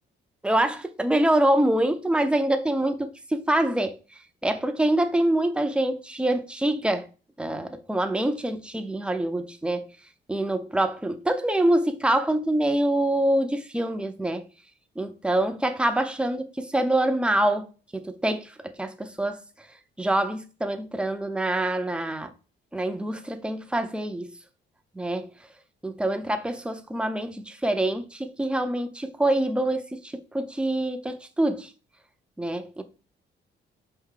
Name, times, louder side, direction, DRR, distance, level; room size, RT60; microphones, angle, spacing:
voice 1, 0.4-4.0 4.4-7.1 7.4-9.9 10.3-14.4 15.0-17.7 17.9-19.7 20.0-22.3 22.7-24.4 24.9-25.3 25.8-31.7 32.4-32.8, right 1 dB, 5° right, 0.5 m, -25 dB
4.6 x 2.6 x 3.7 m
cardioid pair, 90°, 20 cm